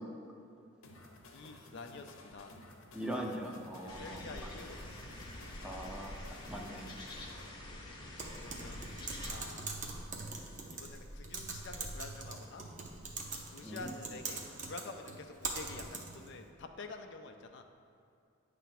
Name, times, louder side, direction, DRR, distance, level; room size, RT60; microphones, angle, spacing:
sound 1, 0.8-7.5, left 2 dB, 85° left, 0.8 m, -55 dB
voice 1, 1.3-2.5 4.0-5.0 7.8-8.8 9.2-9.8 10.4-12.6 13.5-17.6, left 3 dB, 60° left, 5 dB, 0.5 m, -48 dB
voice 2, 2.9-4.5 5.6-6.9 13.6-13.9, equal, 5° right, 0 dB, 0.6 m, -41 dB
sound 2, 3.9-9.3, left 1 dB, 20° left, 0.9 m, -46 dB
Typing, 8.2-16.3, right 3 dB, 40° right, 0.8 m, -43 dB
9.1 x 3.4 x 5.9 m, 2.4 s
head